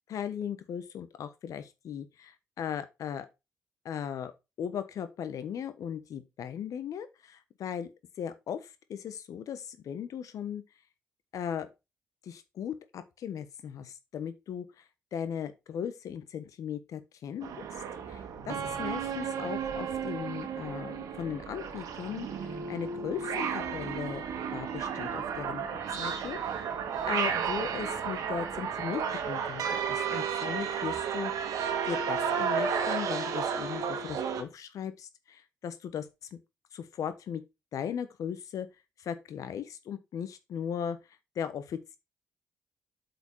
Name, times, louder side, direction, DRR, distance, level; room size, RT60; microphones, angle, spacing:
voice 1, 0.1-3.3 3.8-4.3 4.6-7.9 8.2-10.6 11.3-11.7 12.2-14.8 15.1-17.6 18.1-24.3 24.5-25.7 26.0-26.8 27.1-31.3 31.9-36.1 36.7-37.4 37.7-38.7 39.0-41.0 41.3-42.0, left 8 dB, 70° left, 1.2 m, -37 dB
sound 1, 17.4-34.4, right 7 dB, 70° right, 1.5 m, -33 dB
8.2 x 5.0 x 4.8 m
hypercardioid pair, 50°, 6 cm